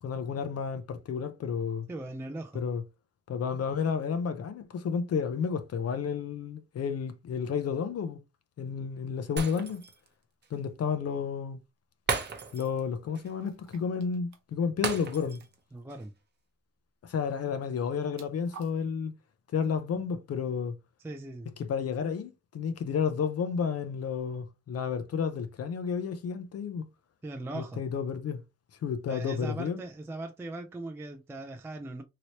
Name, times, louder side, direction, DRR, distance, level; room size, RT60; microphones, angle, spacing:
voice 1, 0.0-1.9 2.5-2.8 3.3-8.2 8.6-9.8 10.5-11.6 12.5-15.4 17.0-19.1 19.5-20.7 21.6-26.8 27.5-28.4 28.8-29.8, left 6 dB, 55° left, 0.5 m, -31 dB
voice 2, 1.9-2.6 15.7-16.1 21.0-21.5 27.2-27.8 29.1-32.0, right 2 dB, 10° right, 0.3 m, -39 dB
Shatter, 9.4-10.1 10.4-10.5 12.1-12.8 13.1-13.3 14.8-15.5 15.9-16.0, right 5 dB, 35° right, 0.7 m, -34 dB
sound 1, 10.6-10.7 13.4-14.4 14.7-14.9 15.1-15.8 17.7-18.7, right 5 dB, 75° right, 0.8 m, -52 dB
3.1 x 2.8 x 2.7 m
wide cardioid pair, 140°, 29 cm